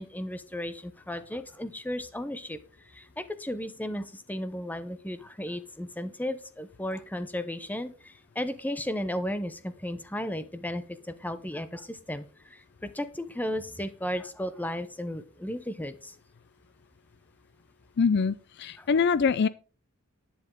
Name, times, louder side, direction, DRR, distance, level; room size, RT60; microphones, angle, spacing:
voice 1, 0.0-2.6 2.9-16.1 18.8-18.9, left 1 dB, 10° left, 0.9 m, -35 dB
voice 2, 18.0-19.5, left 5 dB, 55° left, 0.4 m, -24 dB
11.0 x 9.7 x 3.8 m
head